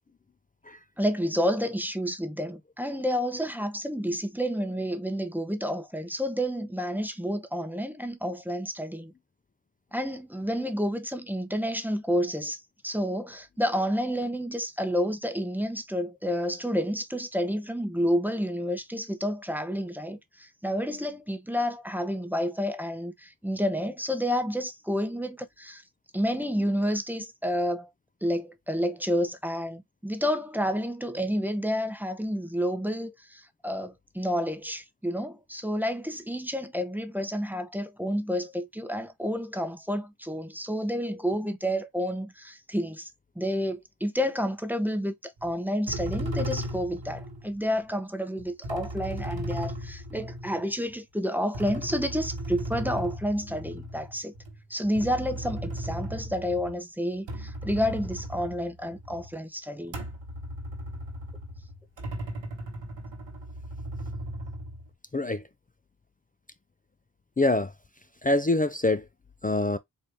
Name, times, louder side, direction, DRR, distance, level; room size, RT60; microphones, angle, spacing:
voice 1, 1.0-9.1 9.9-25.8 26.1-27.9 28.2-43.1 43.4-54.3 54.7-60.0, equal, 5° right, 0.7 m, -30 dB
sound 1, 45.4-45.5 45.9-47.5 48.4-50.9 51.5-56.8 57.1-59.3 59.9-64.9, equal, 85° right, 1.3 m, -36 dB
voice 2, 65.1-65.4 67.4-67.7 68.2-69.0 69.4-69.8, left 2 dB, 20° left, 0.3 m, -24 dB
4.2 x 2.6 x 3.3 m
wide cardioid pair, 65°, 44 cm